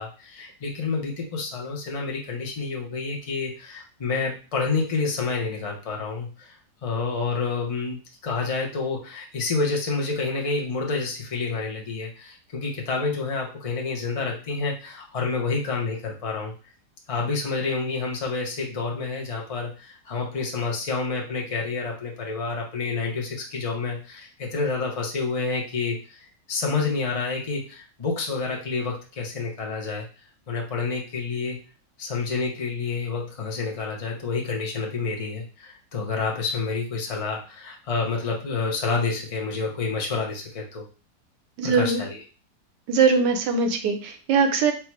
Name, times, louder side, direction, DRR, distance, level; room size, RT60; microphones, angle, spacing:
voice 1, 0.0-6.6 6.8-16.5 17.1-30.1 30.5-31.6 32.0-40.8 41.6-42.2, left 4 dB, 60° left, -1 dB, 0.3 m, -28 dB
voice 2, 41.6-42.0 42.9-44.7, right 5 dB, 85° right, 5 dB, 1.4 m, -21 dB
4.6 x 2.1 x 4.5 m, 0.35 s
omnidirectional pair, 1.8 m